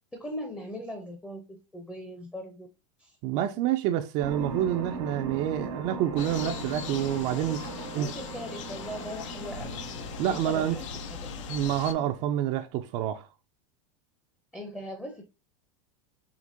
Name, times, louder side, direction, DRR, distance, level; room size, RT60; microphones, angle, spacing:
voice 1, 0.1-2.7 3.0-3.2 7.5-9.7 10.3-11.3 14.5-15.2, equal, 5° left, 0.5 m, -40 dB
voice 2, 3.2-7.6 7.9-8.1 10.2-10.8 11.5-13.3, right 11 dB, 45° right, 0.4 m, -28 dB
sound 1, 4.2-12.2, right 5 dB, 85° right, 1.2 m, -40 dB
sound 2, 6.1-11.9, left 7 dB, 80° left, 0.6 m, -39 dB
5.0 x 2.9 x 2.6 m
supercardioid pair, 135°, 16 cm